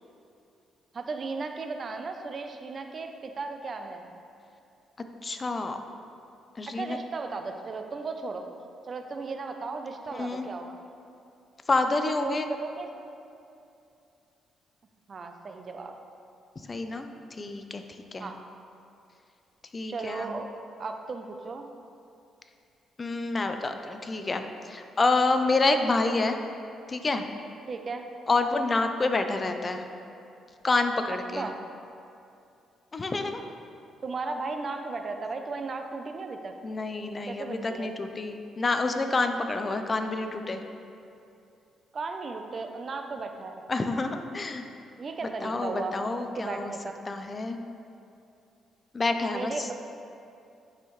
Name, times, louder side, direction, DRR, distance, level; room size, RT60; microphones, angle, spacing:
voice 1, 0.9-4.1 6.7-8.5 8.9-10.8 11.9-12.9 15.1-15.9 18.2-18.4 19.9-20.5 20.8-21.7 27.7-28.0 31.4-31.5 34.0-36.5 37.3-37.9 41.9-43.6 45.0-45.9 46.4-47.0 49.3-49.8, right 4 dB, 40° right, 5 dB, 0.6 m, -35 dB
voice 2, 5.2-5.8 6.6-7.0 10.1-10.5 11.7-12.5 16.7-17.8 18.1-18.3 19.7-20.4 23.0-26.4 26.9-27.2 28.3-29.8 30.6-31.5 32.9-33.4 36.6-40.6 43.7-44.7 45.4-46.7 47.1-47.6 48.9-49.7, left 3 dB, 30° left, 7 dB, 0.5 m, -28 dB
9.5 x 5.5 x 3.2 m, 2.6 s
cardioid pair, 90°, 0 cm